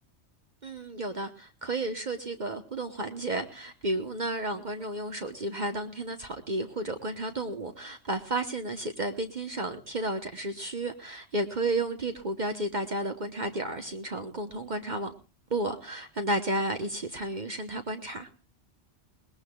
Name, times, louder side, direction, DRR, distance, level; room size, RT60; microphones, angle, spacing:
voice 1, 0.6-15.1 15.5-18.3, right 1 dB, 45° right, 6 dB, 1.2 m, -32 dB
21.0 x 19.5 x 2.3 m, 0.33 s
omnidirectional pair, 1.2 m